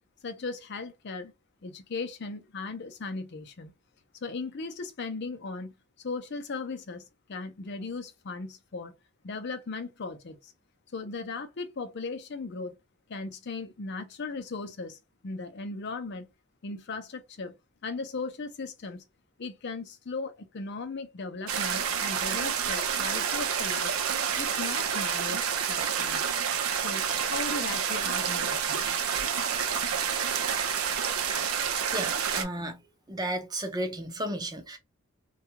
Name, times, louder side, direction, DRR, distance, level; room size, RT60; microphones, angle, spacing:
voice 1, 0.2-1.3 1.6-3.7 4.2-8.9 9.2-10.5 10.9-12.7 13.1-15.0 15.2-16.3 16.6-17.5 17.8-19.0 19.4-23.9 24.4-26.2 26.8-29.0, left 3 dB, 55° left, 0.5 m, -37 dB
sound 1, 21.5-32.4, right 7 dB, 85° right, 0.5 m, -29 dB
voice 2, 31.5-32.8 33.1-34.8, right 1 dB, 20° right, 0.6 m, -34 dB
2.3 x 2.3 x 2.8 m
head